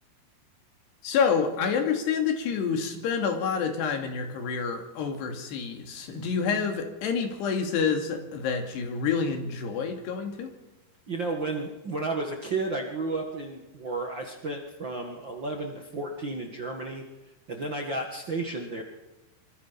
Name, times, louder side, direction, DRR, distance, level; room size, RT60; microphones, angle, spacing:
voice 1, 1.0-10.5, left 6 dB, 85° left, 4 dB, 4.6 m, -28 dB
voice 2, 11.1-17.0 17.5-18.8, right 3 dB, 45° right, 2 dB, 1.6 m, -32 dB
25.0 x 25.0 x 5.8 m, 1.0 s
omnidirectional pair, 4.7 m